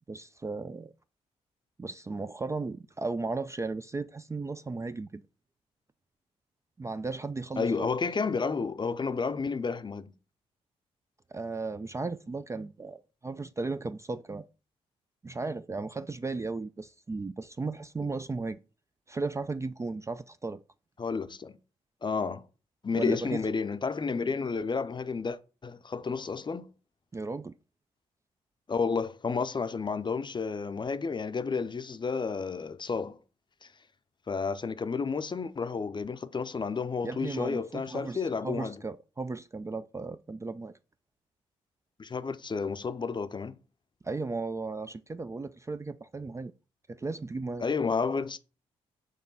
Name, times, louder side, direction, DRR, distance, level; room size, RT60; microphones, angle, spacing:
voice 1, 0.1-0.9 1.8-5.2 6.8-7.9 11.3-14.4 15.2-18.6 19.1-20.6 22.9-23.4 27.1-27.5 37.0-40.7 44.0-46.5 46.9-47.7, right 3 dB, 20° right, 0.3 m, -35 dB
voice 2, 7.6-10.1 21.0-21.6 22.0-22.4 22.8-26.7 28.7-33.2 33.6-33.7 34.3-38.8 42.0-43.5 47.6-48.4, left 5 dB, 30° left, 0.6 m, -31 dB
6.5 x 3.0 x 5.5 m
hypercardioid pair, 40°, 16 cm